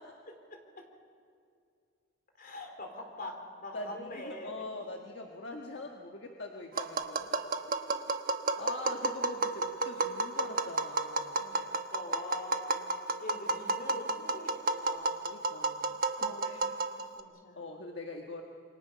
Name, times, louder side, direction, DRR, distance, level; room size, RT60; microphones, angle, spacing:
voice 1, 0.3-0.8 2.4-4.7 11.3-11.5 11.9-12.9 13.2-15.1 16.2-17.6, left 1 dB, 50° left, 3 dB, 3.6 m, -44 dB
voice 2, 3.7-7.3 7.7-8.1 8.6-11.4 15.2-16.6 17.5-18.4, left 2 dB, 65° left, 1 dB, 1.5 m, -43 dB
Tap, 6.8-17.2, right 3 dB, 50° right, 1.1 m, -32 dB
27.0 x 24.0 x 5.7 m, 2.4 s
head